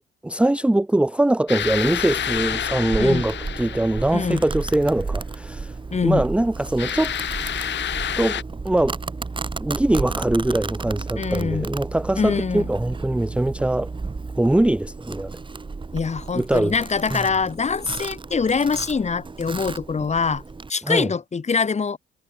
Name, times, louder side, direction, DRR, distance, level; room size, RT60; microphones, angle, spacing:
voice 1, 0.2-5.8 6.0-7.2 8.2-9.0 9.6-13.9 14.4-15.3 16.3-16.7 17.1-17.2 20.8-21.1, right 1 dB, 5° right, 0.6 m, -22 dB
sound 1, 1.5-4.7 6.8-8.4, left 10 dB, 65° left, 4.8 m, -29 dB
Domestic sounds home sounds, 1.6-20.7, right 4 dB, 25° right, 2.5 m, -33 dB
voice 2, 5.9-6.2 11.2-11.7 12.2-12.7 15.9-20.4 20.7-22.0, left 5 dB, 35° left, 3.1 m, -24 dB
cardioid pair, 90°, 20 cm